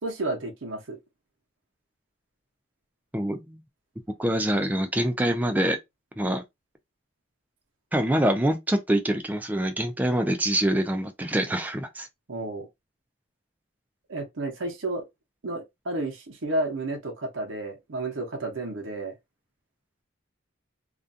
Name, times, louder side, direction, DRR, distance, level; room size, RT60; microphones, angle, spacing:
voice 1, 0.0-1.0 12.3-12.7 14.1-15.0 15.4-19.1, right 2 dB, 65° right, 0.7 m, -31 dB
voice 2, 3.1-3.6 4.2-5.8 6.2-6.4 7.9-12.1, right 1 dB, 10° right, 0.3 m, -25 dB
2.4 x 2.2 x 2.6 m
head